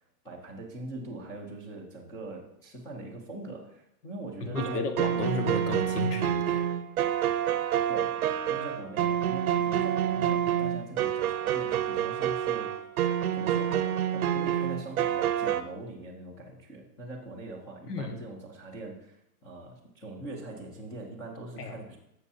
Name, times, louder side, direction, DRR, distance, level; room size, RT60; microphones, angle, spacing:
voice 1, 0.2-4.9 7.9-12.7 13.3-19.2 19.4-22.0, right 2 dB, 5° left, -3 dB, 0.5 m, -42 dB
voice 2, 4.4-6.7 17.9-18.1 21.6-21.7, left 3 dB, 70° left, 6 dB, 1.6 m, -32 dB
sound 1, 4.6-15.6, right 10 dB, 60° right, 0.7 m, -28 dB
12.5 x 7.3 x 2.7 m, 0.81 s
hypercardioid pair, 155°, 49 cm